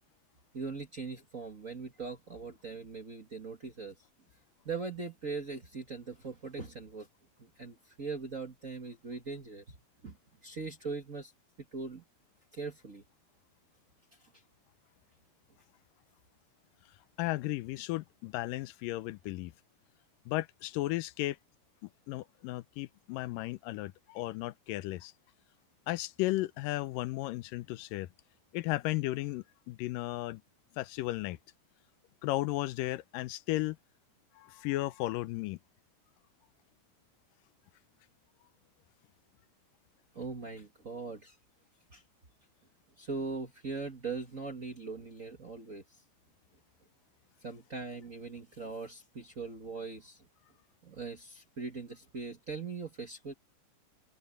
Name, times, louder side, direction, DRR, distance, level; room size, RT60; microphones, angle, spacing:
voice 1, 0.5-3.9 4.6-7.1 7.4-9.6 10.0-10.2 10.4-11.3 11.6-12.0 12.5-13.0 40.1-41.4 41.9-42.0 43.0-46.0 47.4-50.2 50.8-53.3, right 4 dB, 35° right, 1.4 m, -40 dB
voice 2, 17.2-19.5 20.3-21.4 21.8-25.1 25.9-28.1 28.5-30.4 30.8-31.4 32.2-33.8 34.4-35.6, left 18 dB, 90° left, 2.4 m, -34 dB
omnidirectional pair, 3.8 m